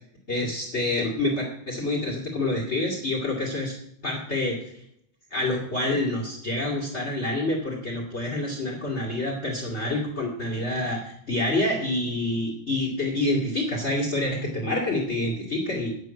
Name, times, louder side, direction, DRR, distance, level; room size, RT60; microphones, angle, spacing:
voice 1, 0.3-3.8 4.0-4.6 5.3-15.9, left 1 dB, 65° left, 1 dB, 0.6 m, -27 dB
11.0 x 6.0 x 7.7 m, 0.73 s
omnidirectional pair, 5.3 m